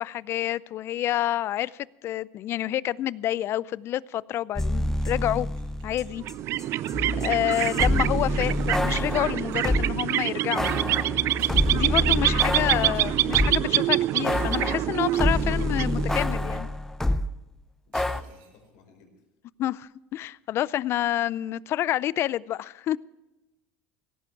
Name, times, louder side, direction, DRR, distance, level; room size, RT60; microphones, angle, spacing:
voice 1, 0.0-5.5 5.8-6.2 7.2-11.0 11.7-16.7 19.6-23.0, left 13 dB, 50° left, 0.5 m, -28 dB
sound 1, 4.6-6.3 6.6-9.9 10.6-13.8 14.2-17.3 17.9-18.2, left 1 dB, 10° left, 0.8 m, -27 dB
sound 2, 4.9-7.9 8.1-9.2 9.5-9.9 11.0-11.1 11.4-12.0 12.9-13.8 15.1-16.0 17.9-18.7, right 5 dB, 75° right, 6.9 m, -52 dB
sound 3, 6.2-16.6, right 14 dB, 55° right, 0.4 m, -26 dB
voice 2, 6.6-7.0 17.8-19.1, left 4 dB, 70° left, 4.9 m, -55 dB
17.0 x 14.5 x 4.7 m
supercardioid pair, 95°, 5 cm